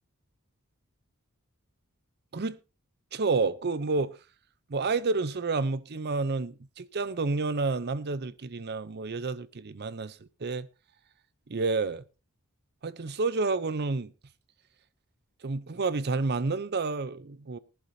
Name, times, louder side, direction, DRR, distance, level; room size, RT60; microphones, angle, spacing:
voice 1, 3.1-4.1 4.7-10.7 11.5-12.0 12.8-14.1 15.4-17.6, right 3 dB, 45° right, 0.6 m, -29 dB
18.5 x 11.0 x 2.7 m
head